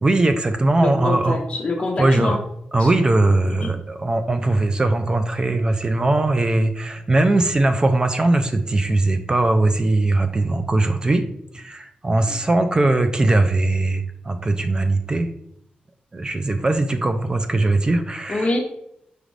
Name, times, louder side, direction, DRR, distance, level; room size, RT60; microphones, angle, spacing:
voice 1, 0.0-1.4 2.0-2.4 2.7-11.2 11.5-15.3 16.1-18.5, right 2 dB, 25° right, 7 dB, 0.3 m, -20 dB
voice 2, 0.8-2.4 2.8-2.9 3.6-3.7 12.3-12.4 18.3-18.6, left 2 dB, 35° left, -2 dB, 0.7 m, -25 dB
6.1 x 2.4 x 3.3 m, 0.76 s
cardioid pair, 95°, 3 cm